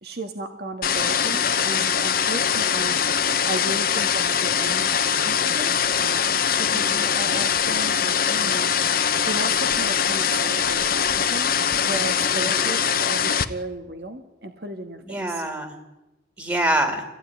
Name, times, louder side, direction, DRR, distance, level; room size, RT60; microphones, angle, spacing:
voice 1, 0.0-3.0 3.5-8.7 9.3-15.4, right 2 dB, 60° right, 5 dB, 1.8 m, -35 dB
sound 1, 0.8-13.4, left 8 dB, 55° left, 1.1 m, -22 dB
voice 2, 6.7-7.2 12.3-12.7 15.0-15.8 16.4-17.0, right 1 dB, 20° right, 4 dB, 2.5 m, -26 dB
25.0 x 16.5 x 9.7 m, 1.0 s
head